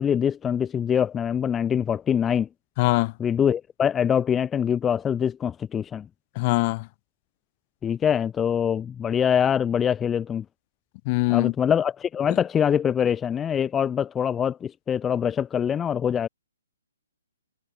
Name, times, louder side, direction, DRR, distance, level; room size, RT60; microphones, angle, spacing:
voice 1, 0.0-2.5 3.2-6.1 7.8-10.4 11.3-16.3, left 8 dB, 15° left, 3.0 m, -24 dB
voice 2, 2.8-3.1 6.4-6.9 11.1-11.5, left 25 dB, 35° left, 6.0 m, -22 dB
hypercardioid pair, 140°, 0 cm